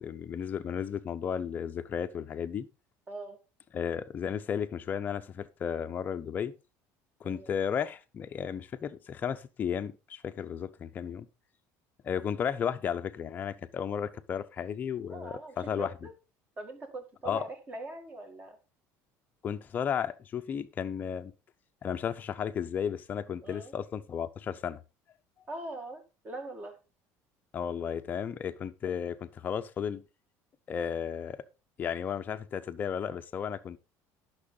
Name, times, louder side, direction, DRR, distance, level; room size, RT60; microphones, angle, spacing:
voice 1, 0.0-2.7 3.7-6.5 7.2-11.3 12.0-15.9 17.2-17.4 19.4-21.3 21.8-24.8 27.5-30.0 30.7-31.4 31.8-33.8, left 8 dB, 25° left, 0.6 m, -34 dB
voice 2, 3.1-3.4 7.2-7.5 15.1-16.1 16.6-18.6 23.4-23.7 25.5-26.8 27.8-28.1, right 2 dB, 20° right, 1.7 m, -42 dB
11.5 x 6.1 x 3.9 m
cardioid pair, 170°, 7 cm